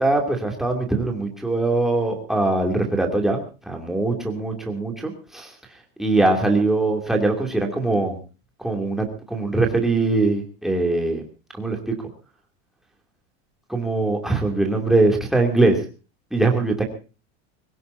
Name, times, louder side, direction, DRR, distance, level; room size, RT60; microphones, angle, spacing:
voice 1, 0.0-3.4 3.7-5.5 6.0-8.2 8.6-11.2 11.6-11.9 13.7-15.8 16.3-16.8, right 2 dB, ahead, 1 dB, 2.7 m, -22 dB
25.0 x 17.0 x 2.7 m, 0.35 s
cardioid pair, 175°, 33 cm